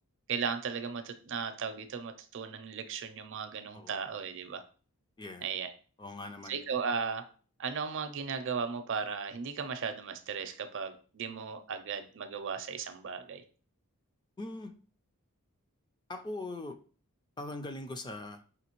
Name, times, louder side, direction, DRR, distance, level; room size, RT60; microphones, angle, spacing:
voice 1, 0.3-4.6 5.4-5.7 6.5-7.3 7.6-13.4, right 6 dB, 55° right, 8 dB, 0.5 m, -36 dB
voice 2, 5.2-5.5 6.0-6.6 14.4-14.7 16.1-16.8 17.4-18.4, left 2 dB, 20° left, 7 dB, 0.3 m, -41 dB
5.0 x 3.0 x 2.9 m, 0.40 s
head